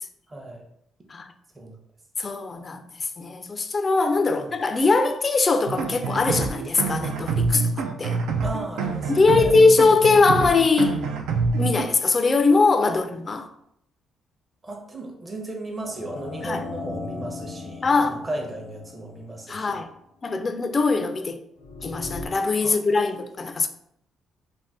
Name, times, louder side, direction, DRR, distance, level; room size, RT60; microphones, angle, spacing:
voice 1, 0.3-0.6 1.5-1.8 4.3-4.5 8.4-9.7 12.9-13.0 14.6-19.8 22.6-22.8, right 2 dB, 25° right, 0.7 m, -35 dB
voice 2, 2.2-2.8 3.2-7.7 8.0-8.2 9.1-11.0 11.6-13.5 16.4-16.6 17.8-18.2 19.5-19.9 20.2-21.4 21.8-23.7, left 3 dB, 35° left, 0.3 m, -21 dB
sound 1, 5.7-11.8, right 4 dB, 85° right, 0.3 m, -26 dB
Eerie Spooky Horror Sound, 15.8-19.8 21.6-22.3, left 3 dB, 85° left, 0.6 m, -37 dB
2.6 x 2.1 x 3.4 m
cardioid pair, 85°, 0 cm